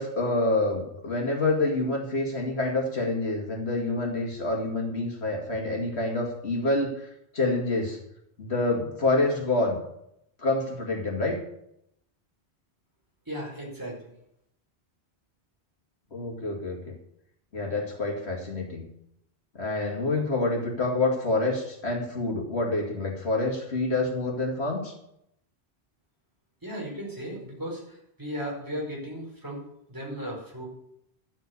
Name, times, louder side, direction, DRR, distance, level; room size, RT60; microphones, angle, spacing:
voice 1, 0.0-8.0 8.4-9.8 10.4-11.4 16.1-16.9 17.5-18.9 19.5-24.9, left 2 dB, 70° left, 1 dB, 2.6 m, -27 dB
voice 2, 13.3-14.1 26.6-29.6 29.9-30.7, equal, 20° right, -4 dB, 5.2 m, -36 dB
12.0 x 8.2 x 8.4 m, 0.77 s
omnidirectional pair, 1.1 m